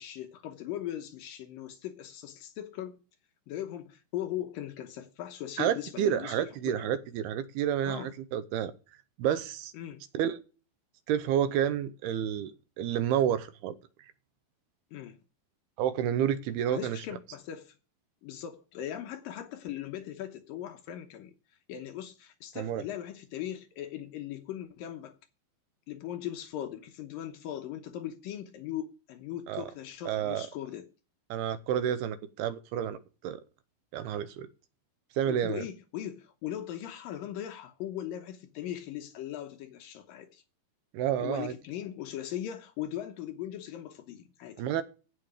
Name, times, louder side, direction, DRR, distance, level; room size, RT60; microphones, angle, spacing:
voice 1, 0.0-3.0 3.5-6.4 6.7-6.9 7.8-8.1 9.7-10.0 14.9-15.2 16.7-17.8 18.2-21.3 21.7-25.2 25.9-30.9 35.3-40.4 41.2-44.6, left 11 dB, 75° left, 2.4 m, -39 dB
voice 2, 5.6-8.7 9.2-9.7 10.2-10.4 11.1-12.5 12.8-13.7 15.8-17.0 22.6-22.8 29.5-29.7 30.1-30.4 31.3-33.0 33.2-33.4 33.9-34.5 35.2-35.6 40.9-41.5 44.6-44.8, right 10 dB, 80° right, 2.8 m, -29 dB
15.5 x 5.8 x 5.0 m
omnidirectional pair, 4.5 m